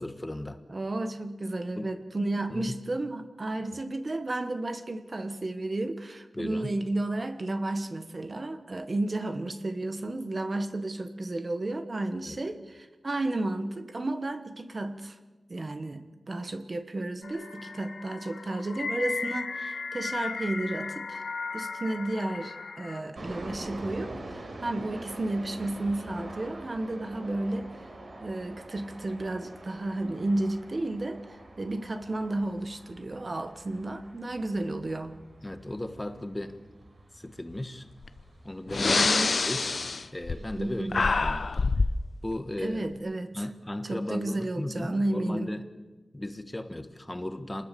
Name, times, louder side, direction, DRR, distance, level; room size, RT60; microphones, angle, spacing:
voice 1, 0.0-0.6 1.8-1.9 2.5-2.8 6.3-6.7 12.3-12.4 35.4-36.6 37.1-37.9 38.4-39.1 39.5-39.7 40.1-41.7 42.2-42.8 43.3-45.6 46.1-47.7, left 1 dB, 15° left, 9 dB, 1.4 m, -36 dB
voice 2, 0.7-15.2 15.5-21.2 21.5-27.8 28.2-31.2 31.6-35.2 38.8-39.4 40.6-41.1 42.6-43.3 43.8-45.5, right 2 dB, 35° right, 9 dB, 1.3 m, -32 dB
sound 1, 17.2-23.0, left 4 dB, 75° left, 1.9 m, -36 dB
sound 2, 23.1-41.7, right 2 dB, 55° right, 4.3 m, -46 dB
Breathing, 38.0-38.2 38.7-40.6 40.9-42.0, left 4 dB, 55° left, 0.8 m, -26 dB
27.0 x 20.0 x 6.9 m, 1.2 s
wide cardioid pair, 120°, 0 cm